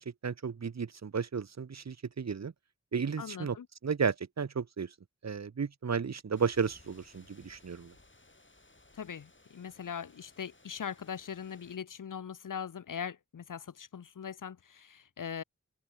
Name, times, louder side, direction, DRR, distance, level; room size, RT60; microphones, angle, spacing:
voice 1, 0.0-2.5 2.9-3.6 3.8-4.9 5.2-7.9, right 6 dB, 60° right, 0.9 m, -33 dB
voice 2, 3.2-3.7 8.9-15.4, left 7 dB, 90° left, 0.8 m, -41 dB
sound 1, 6.3-11.8, left 2 dB, 40° left, 6.8 m, -61 dB
open air
cardioid pair, 40°, 31 cm